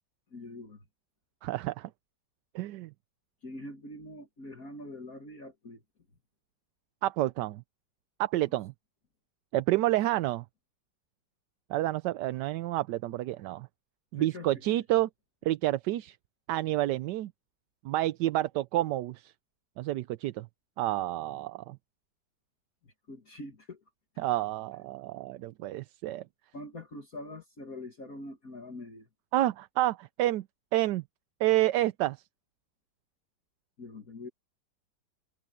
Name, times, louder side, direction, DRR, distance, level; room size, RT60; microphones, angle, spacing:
voice 1, 0.3-0.8 3.4-5.8 14.1-14.8 23.1-23.8 26.5-29.1 33.8-34.3, left 2 dB, 50° left, 2.7 m, -44 dB
voice 2, 1.4-1.9 2.5-2.9 7.0-7.6 8.2-8.7 9.5-10.4 11.7-13.7 14.1-15.1 15.4-16.2 16.5-17.3 17.8-19.3 19.8-20.5 20.8-21.8 24.2-26.2 29.3-30.4 30.7-31.0 31.4-32.2, right 15 dB, 75° right, 1.2 m, -29 dB
omnidirectional pair, 2.0 m